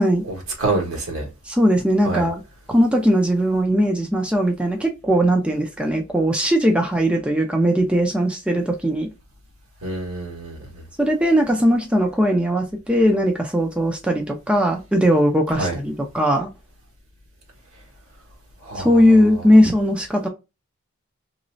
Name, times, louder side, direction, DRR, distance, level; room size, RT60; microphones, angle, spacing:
voice 1, 0.3-1.3 2.0-2.3 9.8-10.8 15.6-15.8 18.6-19.2, right 2 dB, 70° right, 1.6 m, -27 dB
voice 2, 1.5-2.4 2.7-9.1 11.0-16.5 18.8-20.3, equal, 5° right, 0.5 m, -19 dB
3.2 x 3.0 x 2.6 m
head